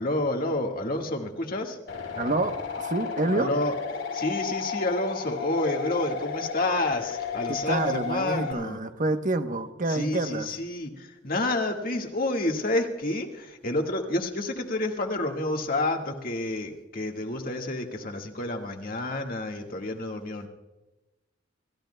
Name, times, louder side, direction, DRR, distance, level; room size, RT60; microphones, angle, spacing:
voice 1, 0.0-1.8 3.3-3.8 4.1-8.8 9.9-20.5, left 2 dB, 50° left, 3 dB, 1.7 m, -29 dB
sound 1, 1.9-8.5, left 6 dB, 70° left, 3.9 m, -33 dB
voice 2, 2.2-3.5 7.5-10.5, right 2 dB, 45° right, 8 dB, 0.9 m, -28 dB
28.5 x 14.5 x 2.2 m, 1.0 s
head